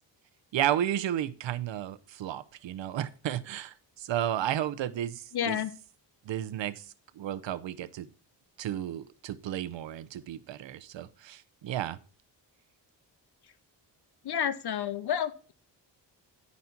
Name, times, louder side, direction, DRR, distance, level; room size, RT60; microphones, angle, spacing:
voice 1, 0.5-5.6 6.2-8.1 8.6-12.0, right 11 dB, 85° right, 12 dB, 0.8 m, -33 dB
voice 2, 5.3-5.7 14.2-15.5, left 9 dB, 60° left, 14 dB, 0.7 m, -30 dB
11.0 x 4.2 x 5.8 m, 0.38 s
cardioid pair, 105°, 44 cm